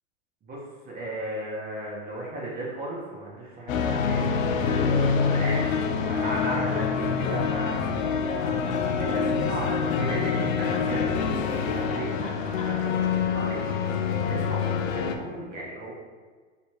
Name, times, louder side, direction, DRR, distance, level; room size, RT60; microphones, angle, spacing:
voice 1, 0.8-8.0 8.3-12.1 12.6-15.9, right 1 dB, 25° right, -4 dB, 1.0 m, -36 dB
sound 1, 3.7-15.2, left 6 dB, 85° left, 0.6 m, -26 dB
Laughter, 4.3-10.2 10.6-13.2, left 3 dB, 20° left, 0.4 m, -37 dB
3.2 x 3.0 x 4.6 m, 1.5 s
hypercardioid pair, 125°, 38 cm